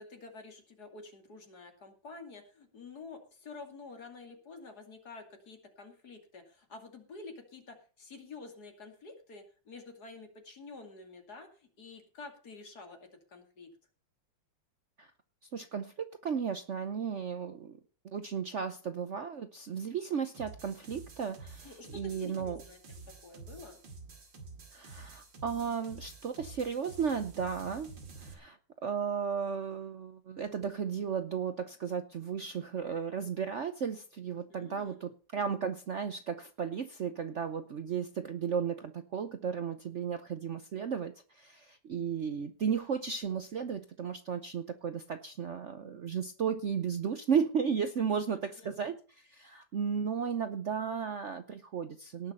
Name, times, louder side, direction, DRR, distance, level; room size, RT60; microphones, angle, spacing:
voice 1, 0.0-13.0 13.3-13.7 21.6-22.8 23.2-23.8 34.5-35.0 48.0-48.7, left 3 dB, 55° left, 5 dB, 3.0 m, -49 dB
voice 2, 15.5-17.8 18.0-22.6 24.7-27.9 28.2-52.3, right 7 dB, 55° right, 10 dB, 0.9 m, -34 dB
sound 1, 20.3-28.3, right 4 dB, 75° right, 3.0 m, -49 dB
18.0 x 6.5 x 5.6 m, 0.38 s
omnidirectional pair, 2.0 m